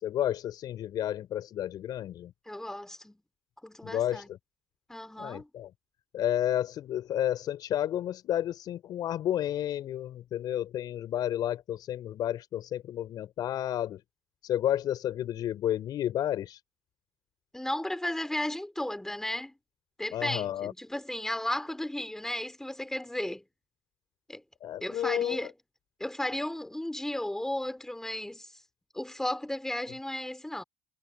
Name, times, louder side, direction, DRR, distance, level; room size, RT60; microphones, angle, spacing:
voice 1, 0.0-2.3 3.8-4.4 5.2-5.7 6.1-14.0 14.4-16.6 20.1-20.7 24.6-25.5, left 11 dB, 55° left, 5.1 m, -31 dB
voice 2, 2.5-3.2 3.6-4.3 4.9-5.5 17.5-19.5 20.0-23.4 24.3-24.4 24.8-25.5 26.0-28.5 28.9-30.6, left 1 dB, 5° left, 3.9 m, -34 dB
supercardioid pair, 80°, 8 cm